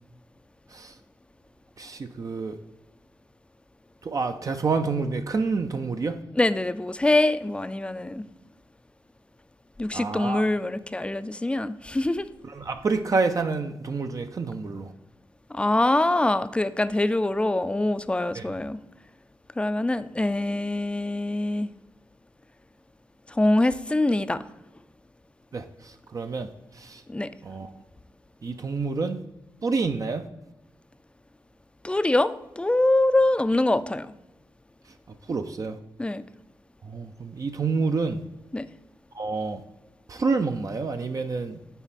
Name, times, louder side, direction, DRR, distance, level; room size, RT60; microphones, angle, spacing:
voice 1, 1.8-2.6 4.0-6.2 9.9-10.4 12.4-14.9 18.3-18.5 25.5-26.5 26.7-27.0 27.4-27.7 28.4-29.2 29.6-30.3 35.3-35.8 36.8-38.2 39.1-39.6 40.1-41.6, right 4 dB, 45° right, 6 dB, 0.5 m, -28 dB
voice 2, 6.4-8.3 9.8-12.3 15.5-18.8 19.6-21.7 23.3-24.4 27.1-27.3 31.8-34.1 36.0-36.2 38.5-38.7, left 2 dB, 15° left, 13 dB, 0.4 m, -24 dB
9.0 x 4.3 x 4.2 m, 0.95 s
cardioid pair, 80°, 8 cm